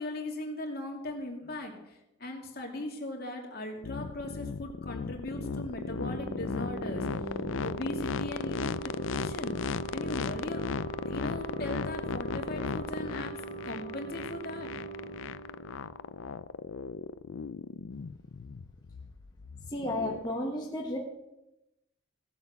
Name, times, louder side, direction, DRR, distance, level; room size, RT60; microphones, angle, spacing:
voice 1, 0.0-7.1 7.6-10.6 11.0-14.7, left 1 dB, 50° left, 1 dB, 2.7 m, -39 dB
sound 1, 3.8-20.3, left 5 dB, 80° left, 0.5 m, -36 dB
sound 2, 5.4-16.9, right 4 dB, 40° right, 6.0 m, -42 dB
voice 2, 19.7-21.0, left 1 dB, 20° left, -2 dB, 1.4 m, -33 dB
16.5 x 8.0 x 7.1 m, 0.92 s
head